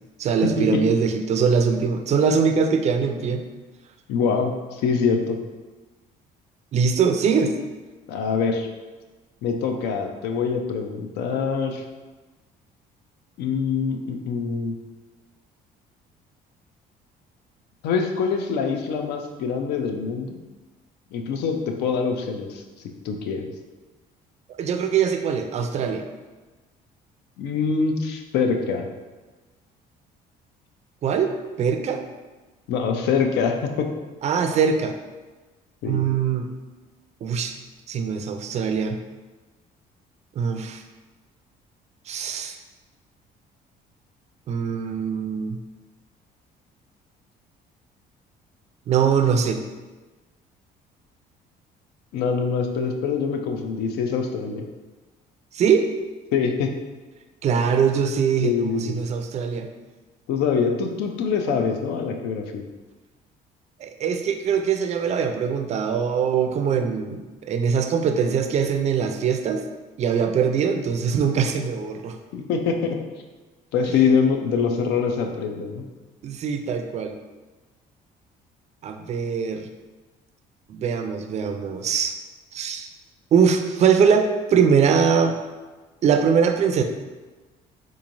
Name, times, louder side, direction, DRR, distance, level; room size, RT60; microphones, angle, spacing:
voice 1, 0.2-3.4 6.7-7.5 24.5-26.0 31.0-31.3 31.6-32.0 34.2-34.9 35.9-36.5 37.2-37.5 37.9-39.0 40.4-40.8 42.1-42.6 44.5-45.6 48.9-49.6 55.5-55.9 57.4-59.7 63.8-69.6 70.0-72.2 76.2-77.1 78.8-79.7 80.7-82.1 82.5-82.9 83.3-85.3 86.0-86.8, right 6 dB, 40° right, 6 dB, 0.4 m, -22 dB
voice 2, 4.1-5.4 8.1-8.7 9.4-11.8 13.4-14.8 17.8-20.4 21.1-22.6 23.0-23.5 27.4-28.9 32.7-33.9 35.8-36.0 52.1-54.7 56.3-56.8 58.4-59.0 60.3-62.6 72.3-73.0 73.7-75.8, left 5 dB, 80° left, 4 dB, 0.5 m, -24 dB
3.6 x 3.0 x 2.6 m, 1.2 s
cardioid pair, 110°, 17 cm